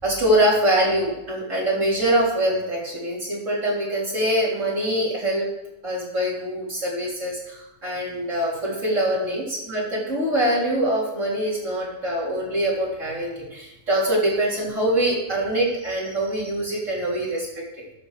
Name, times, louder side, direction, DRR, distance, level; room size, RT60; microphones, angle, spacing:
voice 1, 0.0-5.5 5.8-17.5, right 1 dB, 50° right, -6 dB, 4.0 m, -24 dB
12.0 x 7.2 x 5.0 m, 0.92 s
omnidirectional pair, 1.7 m